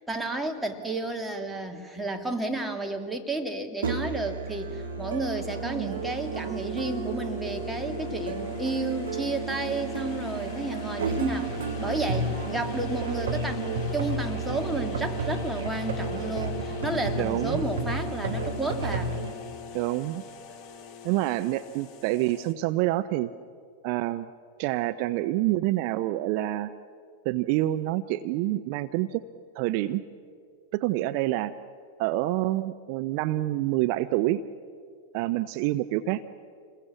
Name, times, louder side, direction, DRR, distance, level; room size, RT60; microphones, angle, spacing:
voice 1, 0.1-19.1, right 2 dB, 5° right, 3 dB, 2.6 m, -32 dB
Musical instrument, 3.8-19.3, right 4 dB, 75° right, 3.0 m, -32 dB
sound 1, 4.7-22.5, left 8 dB, 35° left, 2.2 m, -41 dB
voice 2, 5.6-6.0 17.2-17.6 19.7-20.2 21.0-23.3 23.8-24.3 24.6-26.7 27.2-29.2 29.6-30.0 30.7-31.5 32.0-34.4 35.1-36.2, right 16 dB, 50° right, 12 dB, 0.7 m, -27 dB
28.0 x 21.5 x 7.3 m, 2.2 s
hypercardioid pair, 95°, 0 cm